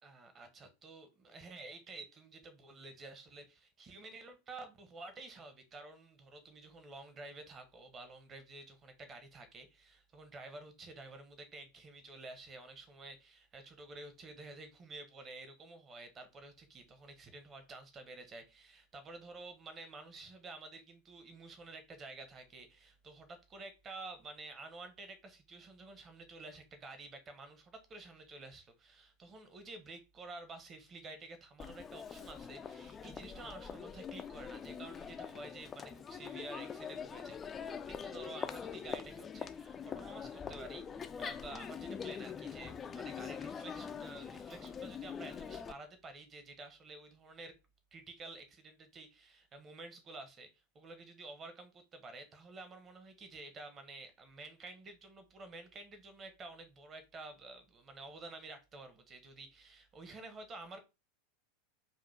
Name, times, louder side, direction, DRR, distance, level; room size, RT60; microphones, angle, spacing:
voice 1, 0.0-47.5 47.9-60.8, right 3 dB, 30° right, 1.2 m, -51 dB
Crowd, 31.6-45.7, left 7 dB, 25° left, 0.4 m, -44 dB
5.0 x 2.6 x 3.5 m
figure-of-eight pair, 85°, 0 cm